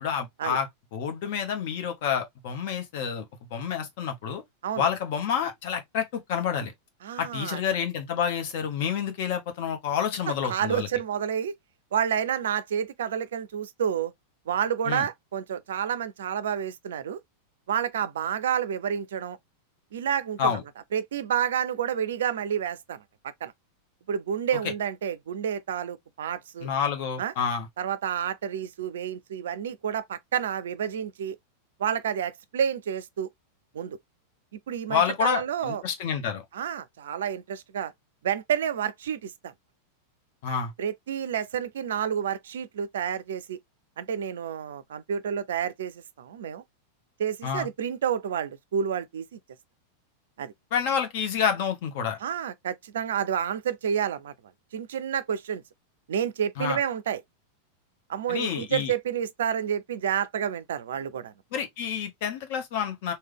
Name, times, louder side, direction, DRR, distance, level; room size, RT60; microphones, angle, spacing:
voice 1, 0.0-3.2 3.5-4.4 4.8-6.7 7.2-10.9 14.9-15.1 20.4-20.6 24.5-24.6 26.6-27.7 34.9-36.4 40.4-40.7 47.4-47.7 50.7-52.2 56.6-56.8 58.3-58.9 61.5-63.1, left 7 dB, 50° left, 1.0 m, -28 dB
voice 2, 7.0-7.6 10.3-11.5 11.9-14.1 14.5-17.2 17.7-19.4 19.9-20.6 20.9-23.0 23.4-23.5 24.1-26.7 27.2-27.3 27.8-31.4 31.8-33.3 33.7-34.0 34.7-35.8 36.5-37.9 38.2-39.5 40.8-43.6 44.0-46.6 47.2-49.4 50.4-50.5 52.2-54.3 54.7-55.6 56.1-57.2 58.1-61.3, right 8 dB, 60° right, 0.4 m, -29 dB
3.3 x 2.2 x 3.5 m
figure-of-eight pair, 90°, 0 cm